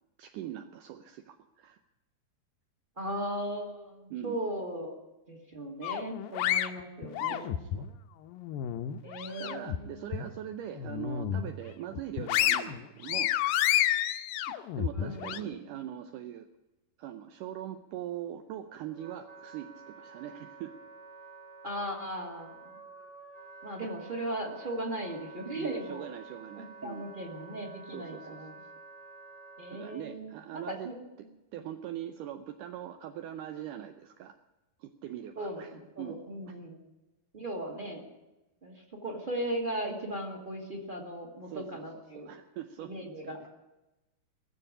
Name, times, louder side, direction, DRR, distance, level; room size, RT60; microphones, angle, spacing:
voice 1, 0.2-1.8 4.1-4.4 7.3-7.9 9.3-13.3 14.5-16.5 17.0-20.8 25.5-27.1 27.9-28.5 29.7-30.9 31.5-34.4 34.8-36.6 41.5-41.8 42.1-43.4, right 11 dB, 75° right, 7 dB, 1.9 m, -41 dB
voice 2, 3.0-4.9 5.3-7.6 9.0-10.1 14.9-15.6 21.6-22.7 23.6-26.1 26.5-28.5 29.6-30.9 35.3-36.8 37.3-38.0 38.6-42.3 42.8-43.5, right 1 dB, 20° right, 2 dB, 1.7 m, -37 dB
sound 1, 5.8-7.9 8.3-9.8 10.1-10.3 10.7-11.5 11.9-15.4, left 11 dB, 75° left, 2.2 m, -30 dB
Wind instrument woodwind instrument, 18.4-30.0, right 4 dB, 35° right, 0.5 m, -50 dB
19.5 x 7.4 x 9.9 m, 1.0 s
omnidirectional pair, 4.6 m